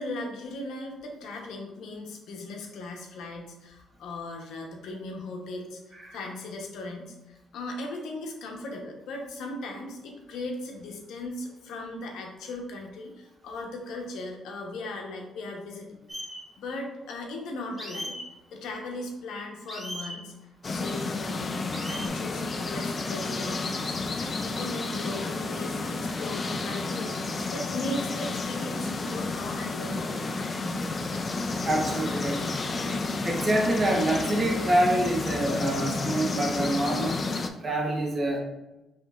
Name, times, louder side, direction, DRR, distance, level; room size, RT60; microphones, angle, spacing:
voice 1, 0.0-16.0 16.6-18.1 18.5-20.3 20.7-21.6 21.9-30.5, left 2 dB, 80° left, 1 dB, 0.9 m, -38 dB
sound 1, 16.1-16.4 17.8-18.2 19.7-20.2 21.7-22.1, equal, 5° right, 1.2 m, -37 dB
sound 2, 20.6-37.5, left 3 dB, 35° left, 0.4 m, -31 dB
voice 2, 30.8-37.2 37.6-38.4, right 1 dB, 35° right, -1 dB, 1.0 m, -27 dB
5.3 x 3.2 x 2.4 m, 0.99 s
cardioid pair, 90°, 0 cm